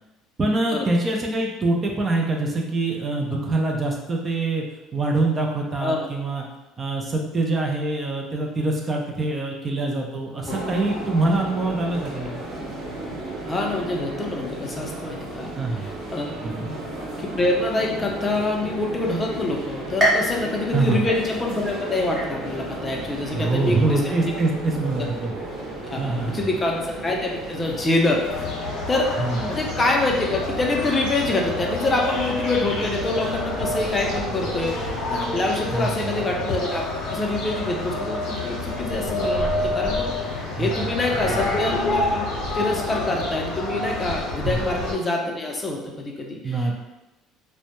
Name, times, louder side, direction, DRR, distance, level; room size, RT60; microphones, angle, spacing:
voice 1, 0.4-4.6 4.9-6.4 6.8-12.4 15.6-15.8 16.4-16.7 20.7-21.1 23.3-25.3 26.0-26.4 29.2-29.6 35.7-36.1 40.5-40.9 41.3-41.6 44.4-44.6 46.4-46.7, right 2 dB, 30° right, 0 dB, 0.4 m, -24 dB
sound 1, 10.5-28.4, right 2 dB, 70° right, 0.7 m, -34 dB
voice 2, 13.5-15.5 15.8-16.3 17.2-24.3 25.0-25.1 25.8-28.2 28.9-29.1 29.5-42.3 42.5-46.7, left 2 dB, 25° left, 0 dB, 0.5 m, -26 dB
sound 2, 20.0-21.7 22.2-22.7 23.2-23.3 24.3-24.4, equal, 10° right, 1.0 m, -26 dB
sound 3, 28.3-44.9, left 2 dB, 75° left, 0.7 m, -28 dB
2.1 x 2.1 x 2.9 m, 1.0 s
supercardioid pair, 85°, 0 cm